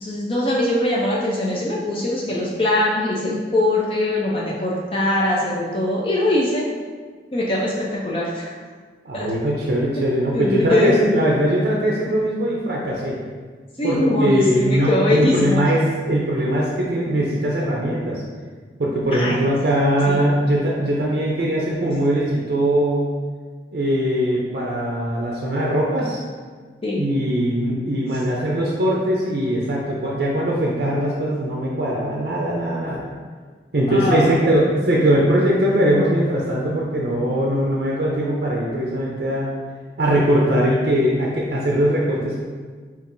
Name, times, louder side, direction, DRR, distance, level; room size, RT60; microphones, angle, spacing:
voice 1, 0.0-6.7 7.3-8.5 9.1-9.3 9.9-10.1 10.3-10.9 13.8-15.6 19.1-19.4 20.1-20.2 26.8-27.0 33.9-34.4, left 1 dB, 30° left, -4 dB, 0.4 m, -22 dB
voice 2, 9.0-13.2 13.8-18.2 18.8-23.1 23.7-26.2 26.9-33.0 33.7-39.5 40.0-42.4, right 1 dB, 65° right, -3 dB, 0.5 m, -21 dB
5.3 x 2.5 x 2.5 m, 1.5 s
head